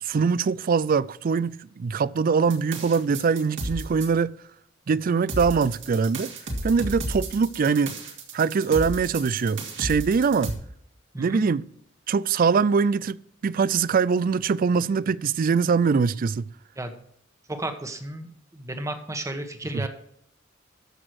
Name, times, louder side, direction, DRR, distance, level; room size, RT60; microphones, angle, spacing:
voice 1, 0.0-4.4 4.9-6.3 6.6-7.9 8.3-10.6 11.2-11.7 12.1-16.4 19.7-19.8, right 5 dB, 45° right, 0.4 m, -23 dB
sound 1, 2.5-4.1 5.3-10.5, right 1 dB, 70° right, 2.6 m, -33 dB
voice 2, 17.5-19.9, right 1 dB, 15° right, 1.2 m, -33 dB
14.0 x 6.1 x 4.7 m
head